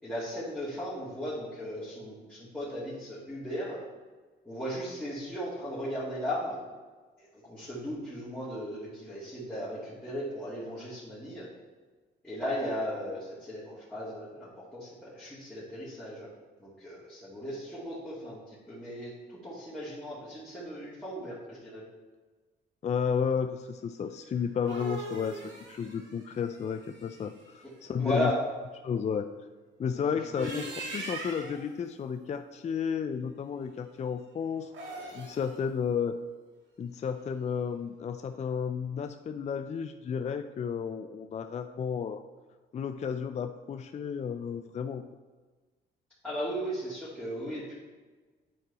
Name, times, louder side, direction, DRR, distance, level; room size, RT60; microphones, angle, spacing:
voice 1, 0.0-3.8 4.4-6.6 7.2-11.5 12.2-16.3 16.6-21.8 28.0-28.4 29.9-30.1 30.4-30.6 46.2-47.7, equal, 5° left, -11 dB, 2.5 m, -36 dB
voice 2, 22.8-25.4 25.7-28.3 28.8-29.3 29.8-34.7 35.1-36.2 36.8-42.2 42.7-45.0, left 6 dB, 35° left, 8 dB, 0.4 m, -32 dB
sound 1, 24.4-27.4 30.2-31.7 34.6-35.5, right 2 dB, 70° right, 2.0 m, -41 dB
9.4 x 4.5 x 4.1 m, 1.3 s
cardioid pair, 90°, 20 cm